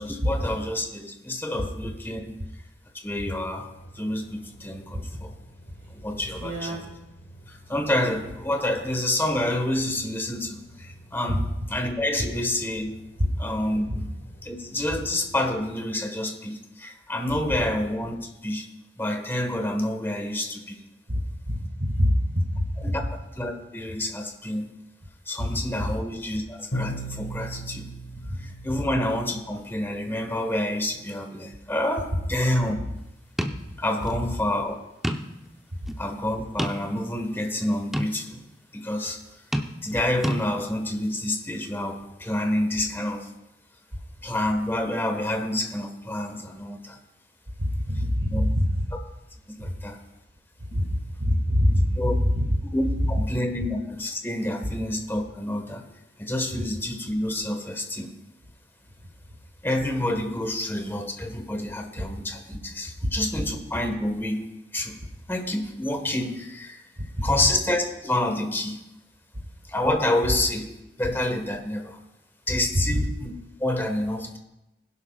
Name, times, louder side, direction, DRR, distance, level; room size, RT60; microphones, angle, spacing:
voice 1, 0.0-2.3 3.0-5.3 5.9-6.8 7.5-11.4 11.7-12.9 13.4-14.0 14.4-18.7 19.0-20.8 22.8-23.0 23.3-24.7 25.3-27.9 28.4-32.7 33.8-34.7 36.0-38.4 38.7-39.2 39.8-43.3 44.2-47.0 48.3-48.5 49.5-50.0 52.0-52.1 52.7-55.8 56.2-58.1 59.6-64.4 64.7-65.0 65.3-66.8 67.2-68.8 69.7-70.7 71.0-72.0 72.5-73.3 73.6-74.4, left 1 dB, 15° left, 4 dB, 1.5 m, -28 dB
sound 1, 3.7-15.8, right 1 dB, 65° left, 3.9 m, -49 dB
voice 2, 6.4-6.8 11.3-11.4 13.9-14.0 21.1-21.2 21.5-22.9 47.6-48.7 50.7-50.9 51.2-52.4 72.9-73.0, equal, 65° right, -2 dB, 2.2 m, -24 dB
Bowed string instrument, 26.7-29.5, right 1 dB, 80° left, 2.1 m, -35 dB
sound 2, 33.4-33.7 34.0-34.2 35.0-35.4 35.9-36.0 36.6-37.1 37.9-38.2 39.5-40.0 40.2-40.4, equal, ahead, 0.7 m, -28 dB
20.5 x 11.0 x 2.4 m, 0.92 s
head